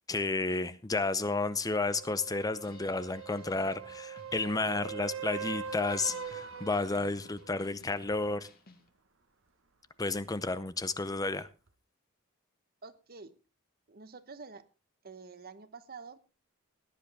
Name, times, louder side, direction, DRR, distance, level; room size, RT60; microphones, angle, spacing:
voice 1, 0.1-8.5 10.0-11.5, left 3 dB, 20° left, 14 dB, 0.6 m, -32 dB
sound 1, 1.9-7.6 11.7-11.8, right 7 dB, 65° right, 1.2 m, -42 dB
sound 2, 2.6-8.9, left 2 dB, 50° left, 1.6 m, -58 dB
voice 2, 12.8-13.3 13.9-14.6 15.0-16.2, right 4 dB, 45° right, 12 dB, 1.0 m, -48 dB
17.0 x 10.5 x 3.5 m, 0.31 s
head